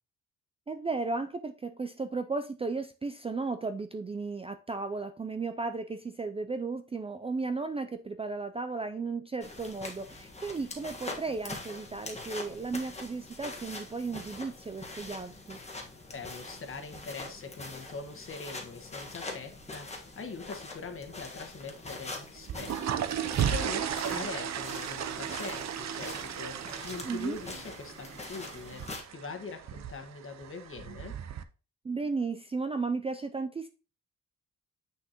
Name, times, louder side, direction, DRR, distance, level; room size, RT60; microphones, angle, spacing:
voice 1, 0.7-15.6 24.1-24.3 27.0-27.4 31.8-33.7, right 4 dB, 20° right, 8 dB, 0.4 m, -35 dB
sound 1, 9.4-29.0, left 2 dB, 20° left, 1.5 m, -44 dB
voice 2, 16.1-31.2, left 4 dB, 40° left, 4 dB, 1.5 m, -43 dB
sound 2, 22.4-31.4, right 9 dB, 55° right, 0.7 m, -35 dB
8.3 x 6.3 x 2.9 m, 0.34 s
cardioid pair, 115°, 32 cm